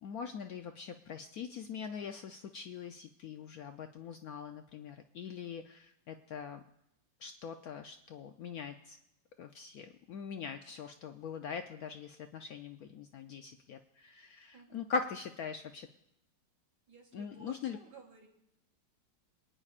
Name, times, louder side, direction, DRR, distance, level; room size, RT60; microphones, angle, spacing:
voice 1, 0.0-6.6 7.2-9.0 9.4-15.9 17.1-17.8, left 6 dB, 70° left, 6 dB, 0.9 m, -42 dB
voice 2, 14.5-14.9 16.9-18.3, right 5 dB, 60° right, -1 dB, 3.4 m, -55 dB
27.5 x 9.8 x 2.4 m, 0.84 s
omnidirectional pair, 1.9 m